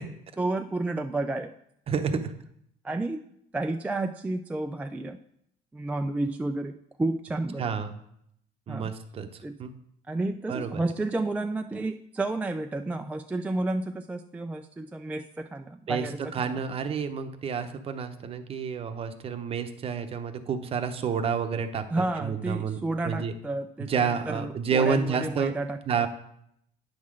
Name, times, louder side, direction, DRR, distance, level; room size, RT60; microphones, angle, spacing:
voice 1, 0.4-1.5 2.8-3.2 3.5-5.2 5.7-7.7 8.7-8.9 9.4-9.6 10.1-16.6 21.9-26.1, right 2 dB, 10° right, 5 dB, 0.3 m, -31 dB
voice 2, 1.9-2.3 7.6-8.0 8.7-9.3 9.6-9.7 10.5-10.8 15.9-16.1 16.3-21.8 22.2-22.8 23.0-23.3 23.8-25.5 25.9-26.1, right 6 dB, 35° right, 8 dB, 0.7 m, -29 dB
9.4 x 3.7 x 6.3 m, 0.73 s
cardioid pair, 120°, 17 cm